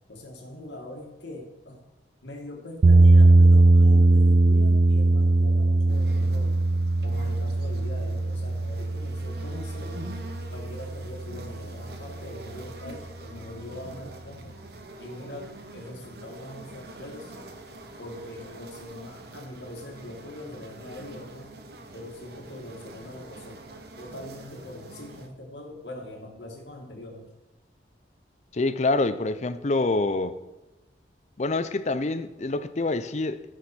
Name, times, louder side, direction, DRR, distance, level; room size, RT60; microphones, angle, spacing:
voice 1, 0.1-1.8 2.2-6.5 7.0-10.0 10.5-14.6 15.0-17.5 18.0-21.6 21.9-23.6 24.0-27.3, left 1 dB, 85° left, 2.1 m, -42 dB
sound 1, 2.8-10.9, right 2 dB, 45° right, 0.3 m, -19 dB
sound 2, 5.9-25.3, right 1 dB, 60° right, 1.1 m, -45 dB
voice 2, 28.5-30.4 31.4-33.4, left 2 dB, 40° left, 0.5 m, -26 dB
14.5 x 6.3 x 4.4 m
head